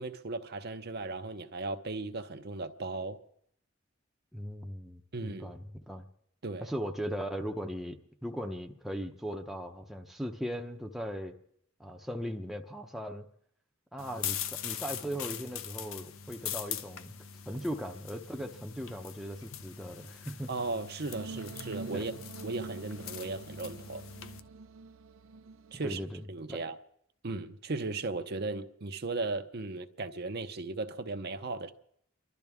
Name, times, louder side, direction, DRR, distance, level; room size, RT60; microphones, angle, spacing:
voice 1, 0.0-3.2 5.1-5.5 6.4-6.7 20.5-22.1 22.4-24.0 25.7-26.0 26.3-26.8 27.2-31.7, right 3 dB, 55° right, 0.8 m, -36 dB
voice 2, 4.3-6.1 6.6-11.4 11.8-13.2 13.9-17.1 17.5-20.5 21.9-22.1 25.8-26.2 26.5-26.6, equal, ahead, 0.7 m, -38 dB
sound 1, 14.0-24.4, left 9 dB, 75° left, 0.7 m, -42 dB
sound 2, 21.1-26.2, right 4 dB, 85° right, 0.6 m, -46 dB
30.0 x 12.0 x 3.6 m
head